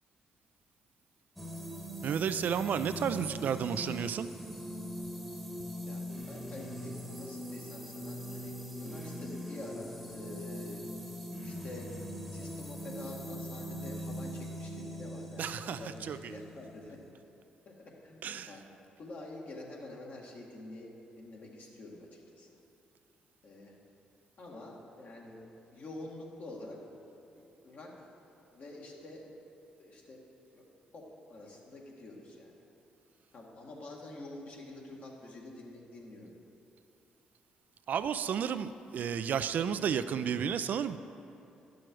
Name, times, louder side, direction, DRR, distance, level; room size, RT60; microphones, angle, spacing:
sound 1, 1.4-17.1, equal, 5° left, 1.2 m, -41 dB
voice 1, 2.0-4.3 15.4-15.8 16.1-16.2 18.2-18.5 37.9-41.0, right 8 dB, 65° right, 11 dB, 0.4 m, -32 dB
voice 2, 5.9-10.9 11.4-11.9 12.3-17.0 17.7-18.6 19.0-20.9 21.2-22.5 23.4-23.8 24.4-25.4 25.7-26.8 27.6-28.1 28.5-29.3 29.8-30.2 30.5-30.7 30.9-32.5 33.3-36.3, left 2 dB, 60° left, -2 dB, 1.9 m, -47 dB
11.5 x 6.3 x 4.6 m, 2.8 s
supercardioid pair, 65°, 3 cm